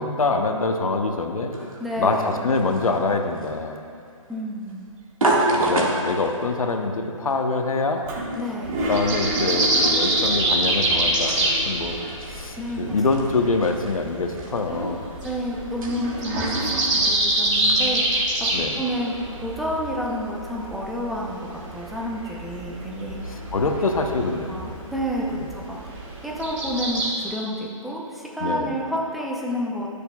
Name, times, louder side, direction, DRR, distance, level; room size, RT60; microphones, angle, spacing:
voice 1, 0.0-1.5 2.0-3.7 5.5-8.0 8.9-12.0 12.3-15.0 18.5-18.8 23.5-24.7 25.3-25.5 28.4-28.7, left 3 dB, 80° left, 4 dB, 1.0 m, -25 dB
sound 1, 1.5-18.0, right 2 dB, 75° right, 1.8 m, -31 dB
voice 2, 1.8-2.5 4.3-4.9 8.3-8.8 12.6-13.0 15.2-18.2 18.7-19.1 19.4-23.4 24.5-26.0 26.2-29.9, equal, ahead, -4 dB, 0.7 m, -30 dB
Toilet flush, 8.0-12.4 12.7-12.8 13.0-13.8 14.3-17.2, right 1 dB, 30° right, 1.4 m, -31 dB
sound 2, 8.6-27.1, right 1 dB, 60° right, 2.6 m, -26 dB
19.0 x 6.8 x 2.4 m, 2.4 s
hypercardioid pair, 150°, 18 cm